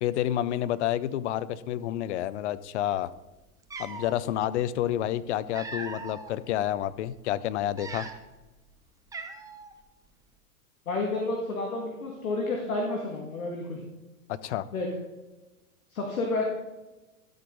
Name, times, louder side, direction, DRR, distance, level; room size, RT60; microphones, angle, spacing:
voice 1, 0.0-3.1 3.8-8.1 14.3-14.7, left 12 dB, 50° left, 16 dB, 0.6 m, -29 dB
Cat, 3.2-3.3 3.6-4.2 5.1-6.3 6.9-7.0 7.6-8.4 8.7-8.8 9.1-9.7, right 3 dB, 10° right, 0.7 m, -40 dB
voice 2, 10.9-13.8 14.7-14.9 15.9-16.4, left 2 dB, 75° left, 0 dB, 2.2 m, -30 dB
12.5 x 8.6 x 4.0 m, 1.1 s
hypercardioid pair, 110°, 44 cm